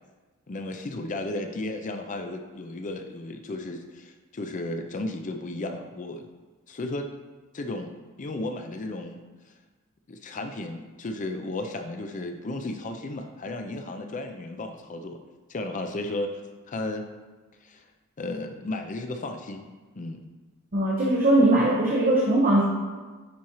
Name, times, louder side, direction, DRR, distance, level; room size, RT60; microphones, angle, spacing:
voice 1, 0.5-6.3 6.7-7.1 7.5-7.9 8.2-9.2 10.1-15.2 15.5-16.4 16.7-17.0 17.6-17.8 18.2-19.7 19.9-20.2, left 2 dB, 35° left, 5 dB, 0.4 m, -34 dB
voice 2, 20.7-22.6, right 1 dB, 40° right, -4 dB, 0.9 m, -20 dB
9.5 x 4.2 x 3.0 m, 1.3 s
head